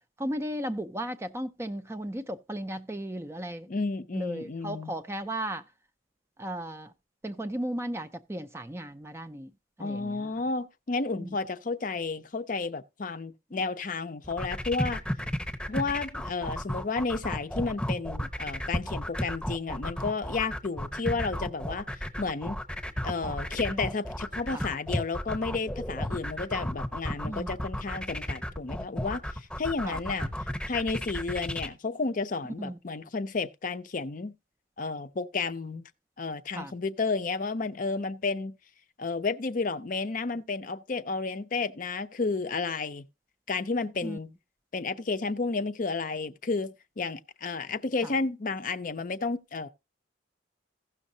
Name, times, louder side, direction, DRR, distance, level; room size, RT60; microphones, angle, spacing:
voice 1, 0.2-3.7 4.1-5.7 6.4-6.9 7.2-9.5 9.8-10.3 11.1-11.4 13.5-13.6 23.7-23.8 24.5-24.7 27.2-27.5 29.8-30.0 32.6-32.8 36.5-36.7 44.0-44.2 48.0-48.1, right 1 dB, 15° right, 0.4 m, -35 dB
voice 2, 3.7-4.9 9.8-15.0 15.7-21.9 22.2-22.6 23.0-30.3 30.7-34.3 34.8-35.9 36.2-38.6 39.0-43.0 43.5-44.3 44.7-49.7, left 4 dB, 40° left, 0.5 m, -32 dB
sound 1, 14.2-31.7, equal, 5° left, 0.9 m, -33 dB
16.0 x 6.3 x 2.7 m
head